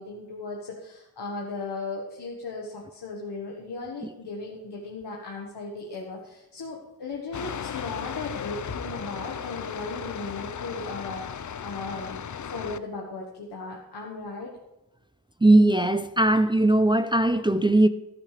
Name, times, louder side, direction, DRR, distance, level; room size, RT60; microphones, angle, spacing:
voice 1, 0.0-14.5, left 3 dB, 85° left, 1.6 m, -37 dB
sound 1, 7.3-12.8, left 8 dB, 50° left, 0.6 m, -36 dB
voice 2, 15.4-17.9, right 1 dB, 15° right, 0.4 m, -19 dB
14.0 x 12.0 x 3.4 m
wide cardioid pair, 90°, 39 cm